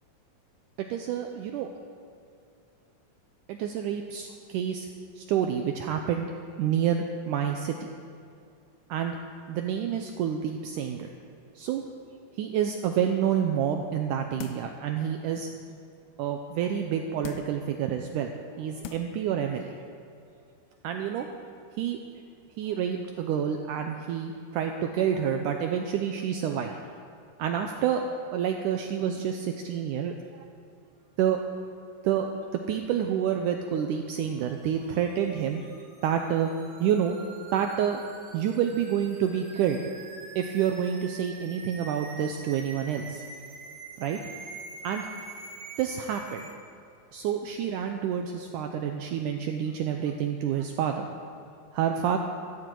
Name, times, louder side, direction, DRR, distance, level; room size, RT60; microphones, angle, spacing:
voice 1, 0.9-1.7 3.5-4.9 5.2-6.3 6.6-7.7 8.9-9.2 9.5-11.1 11.6-11.8 12.4-15.5 16.2-18.3 18.6-19.7 20.8-21.3 21.8-22.0 22.6-26.8 27.4-28.1 28.3-30.1 31.2-31.4 32.0-32.3 32.5-35.6 36.0-36.5 36.8-37.2 37.5-38.0 38.3-39.8 40.4-43.2 44.0-44.2 44.8-45.1 45.8-46.4 47.1-51.1 51.7-52.2, right 9 dB, 90° right, 4 dB, 1.8 m, -28 dB
sound 1, 14.4-14.8 15.3-15.4 17.2-17.7 18.4-18.5 18.8-19.2 19.6-19.7, left 10 dB, 85° left, 2.6 m, -41 dB
sound 2, 34.3-46.5, right 3 dB, 70° right, 3.7 m, -46 dB
16.0 x 13.5 x 4.6 m, 2.5 s
omnidirectional pair, 4.4 m